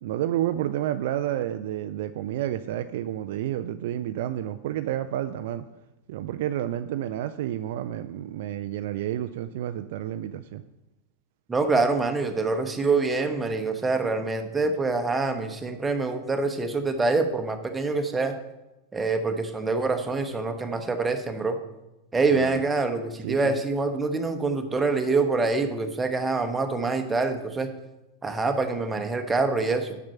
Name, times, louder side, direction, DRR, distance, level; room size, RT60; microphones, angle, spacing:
voice 1, 0.0-5.7 6.1-10.6 22.3-22.6 23.2-23.6, right 12 dB, 55° right, 10 dB, 0.3 m, -30 dB
voice 2, 11.5-18.4 18.9-21.6 22.1-27.7 28.2-30.0, right 3 dB, 10° right, 6 dB, 0.9 m, -25 dB
7.4 x 6.1 x 5.6 m, 0.96 s
figure-of-eight pair, 90°, 0 cm